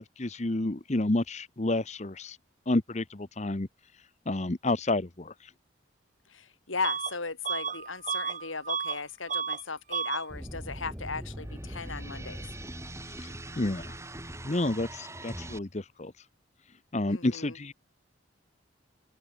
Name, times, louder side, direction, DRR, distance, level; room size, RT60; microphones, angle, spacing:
voice 1, 0.0-2.4 2.7-3.7 4.3-5.5 13.1-14.0 14.4-16.1 16.9-17.7, left 2 dB, 35° left, 0.9 m, -30 dB
voice 2, 6.3-12.5 17.1-17.6, left 4 dB, 90° left, 3.9 m, -37 dB
Bus / Alarm, 6.8-7.2 7.4-9.0 9.3-9.6 9.9-10.3, right 6 dB, 40° right, 1.9 m, -32 dB
sound 1, 10.3-15.6, right 1 dB, 15° right, 7.7 m, -41 dB
open air
head